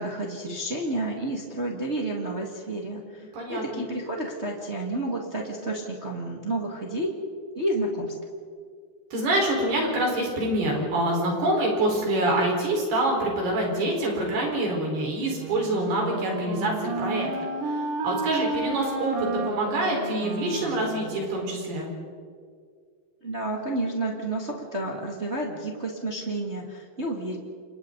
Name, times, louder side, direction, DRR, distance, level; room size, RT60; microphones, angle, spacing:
voice 1, 0.0-7.1 7.5-8.1 23.2-27.4, right 1 dB, 35° right, -1 dB, 1.0 m, -30 dB
voice 2, 3.3-3.8 9.1-17.3 17.6-21.9, right 1 dB, 60° right, 0 dB, 6.6 m, -26 dB
Wind instrument woodwind instrument, 15.3-21.4, right 3 dB, 80° right, 4.2 m, -32 dB
29.5 x 26.5 x 4.0 m, 2.1 s
omnidirectional pair, 5.1 m